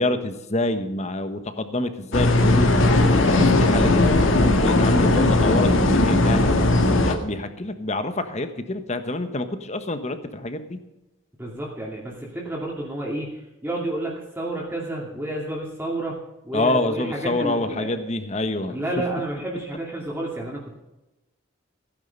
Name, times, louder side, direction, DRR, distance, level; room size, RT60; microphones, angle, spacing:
voice 1, 0.0-2.8 3.2-6.6 7.0-10.8 16.5-18.7, left 2 dB, 35° left, 9 dB, 1.2 m, -27 dB
sound 1, 2.1-7.1, left 2 dB, 70° left, 1.8 m, -18 dB
voice 2, 11.4-16.2 16.4-17.9 18.7-20.8, right 1 dB, 10° right, -4 dB, 2.4 m, -30 dB
16.0 x 10.5 x 5.4 m, 0.99 s
head